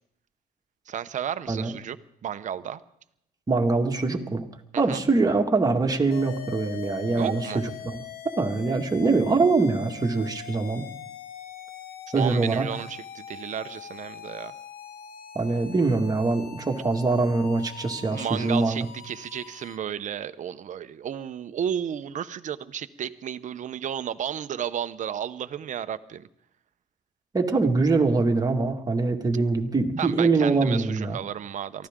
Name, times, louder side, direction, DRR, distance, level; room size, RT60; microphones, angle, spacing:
voice 1, 0.9-2.0 2.2-2.8 4.7-5.0 7.2-7.6 12.2-14.5 18.1-26.3 30.0-31.9, right 9 dB, 45° right, 12 dB, 0.9 m, -33 dB
voice 2, 3.5-4.5 4.8-8.0 8.4-10.9 12.1-12.7 15.4-18.9 27.3-31.2, right 3 dB, 20° right, 3 dB, 2.0 m, -23 dB
sound 1, 6.1-19.8, left 9 dB, 60° left, 1.3 m, -42 dB
23.5 x 15.5 x 3.8 m, 0.76 s
cardioid pair, 110°, 17 cm